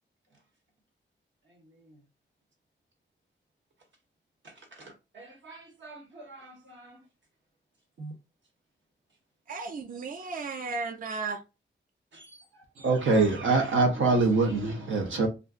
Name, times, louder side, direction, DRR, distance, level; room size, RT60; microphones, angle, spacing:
voice 1, 1.4-2.0 4.4-7.0 8.0-8.1 10.2-10.3 12.1-13.4, right 2 dB, 70° right, 1.2 m, -48 dB
voice 2, 9.5-11.4, right 4 dB, 45° right, 0.4 m, -34 dB
voice 3, 12.8-15.3, right 3 dB, 85° right, 0.7 m, -23 dB
2.5 x 2.2 x 3.6 m
wide cardioid pair, 110°, 20 cm